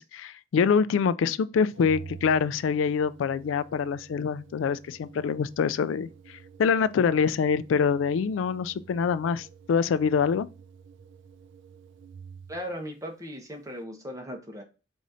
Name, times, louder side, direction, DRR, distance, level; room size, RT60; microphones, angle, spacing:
voice 1, 0.0-10.5, left 6 dB, 85° left, 0.3 m, -25 dB
Organ, 1.7-12.8, right 6 dB, 70° right, 0.4 m, -49 dB
voice 2, 12.5-14.6, equal, 15° right, 1.0 m, -37 dB
4.1 x 2.7 x 4.8 m
head